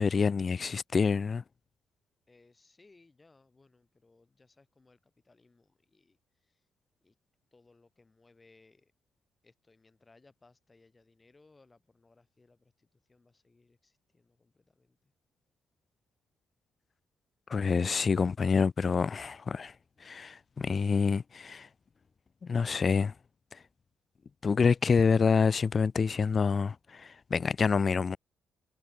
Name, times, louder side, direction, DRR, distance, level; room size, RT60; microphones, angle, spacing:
voice 1, 0.0-1.4 17.5-19.7 20.0-21.7 22.4-23.1 23.5-23.6 24.4-28.2, left 5 dB, 40° left, 0.4 m, -27 dB
voice 2, 2.3-6.2 6.5-6.6 7.0-7.1 7.5-8.9 9.4-15.1, left 3 dB, 25° left, 7.2 m, -64 dB
cardioid pair, 90°, 0 cm